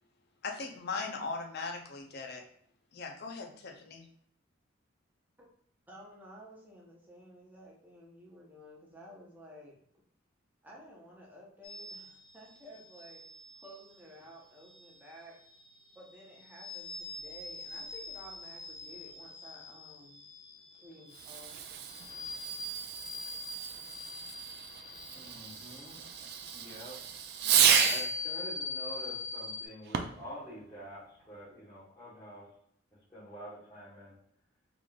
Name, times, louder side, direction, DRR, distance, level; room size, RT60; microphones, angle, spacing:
voice 1, 0.4-2.4 2.9-4.1, left 4 dB, 55° left, 3 dB, 0.6 m, -39 dB
voice 2, 5.9-9.8 10.6-13.2 13.6-15.3 15.9-20.2 20.8-22.7, equal, 10° right, -4 dB, 0.8 m, -53 dB
sound 1, 11.6-29.7, left 3 dB, 70° left, 1.2 m, -43 dB
Fireworks, 21.1-28.2 29.8-30.3, right 8 dB, 50° right, 0.3 m, -32 dB
voice 3, 25.1-26.0 26.5-27.0 27.8-32.4 33.1-34.1, equal, 15° left, -13 dB, 1.3 m, -47 dB
3.7 x 3.4 x 2.3 m, 0.67 s
head